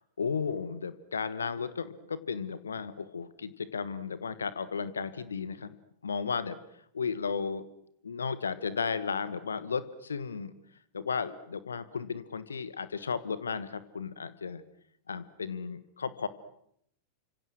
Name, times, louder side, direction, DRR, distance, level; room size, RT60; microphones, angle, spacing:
voice 1, 0.0-5.7 6.0-7.7 8.0-10.5 10.9-14.6 15.1-16.3, left 5 dB, 70° left, 15 dB, 1.3 m, -34 dB
29.5 x 26.0 x 6.4 m, 0.72 s
figure-of-eight pair, 90°, 0 cm